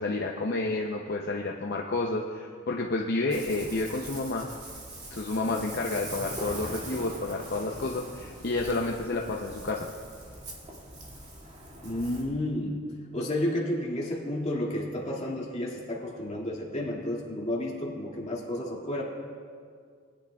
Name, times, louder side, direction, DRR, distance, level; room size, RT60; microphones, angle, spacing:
voice 1, 0.0-4.5 5.1-9.9, left 2 dB, 55° left, 0 dB, 0.7 m, -30 dB
Ocean, 3.3-12.2, right 1 dB, 35° right, 2.3 m, -42 dB
voice 2, 11.8-12.8 13.1-19.0, left 1 dB, 35° left, -4 dB, 2.2 m, -31 dB
21.0 x 9.9 x 2.3 m, 2.1 s
head